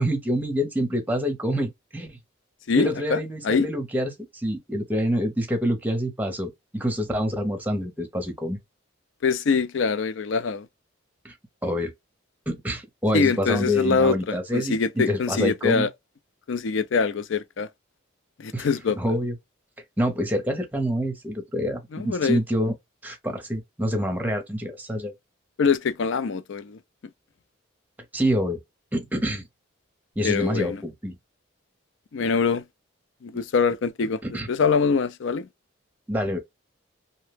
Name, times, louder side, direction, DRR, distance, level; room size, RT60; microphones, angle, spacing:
voice 1, 0.0-2.2 2.8-8.6 11.2-11.3 11.6-11.9 12.5-15.9 18.5-18.7 19.0-19.3 20.0-22.7 23.0-25.1 28.1-28.6 28.9-29.5 30.2-31.2 34.2-34.5 36.1-36.4, equal, 10° right, 0.6 m, -26 dB
voice 2, 2.7-3.7 9.2-10.7 13.1-15.9 16.5-17.7 18.4-19.0 21.9-22.4 25.6-26.8 30.2-30.8 32.1-32.6 33.2-35.5, left 5 dB, 65° left, 0.4 m, -24 dB
2.8 x 2.1 x 3.3 m
head